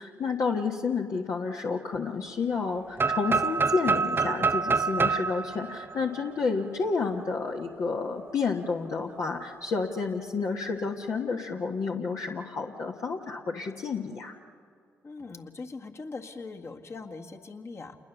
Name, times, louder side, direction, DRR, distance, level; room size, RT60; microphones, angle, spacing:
voice 1, 0.0-14.4, left 4 dB, 65° left, 0 dB, 1.4 m, -30 dB
sound 1, 3.0-6.8, right 5 dB, 35° right, 0.7 m, -27 dB
voice 2, 15.0-18.0, left 3 dB, 45° left, 3 dB, 1.9 m, -41 dB
28.0 x 20.5 x 7.1 m, 2.3 s
supercardioid pair, 50°, 6 cm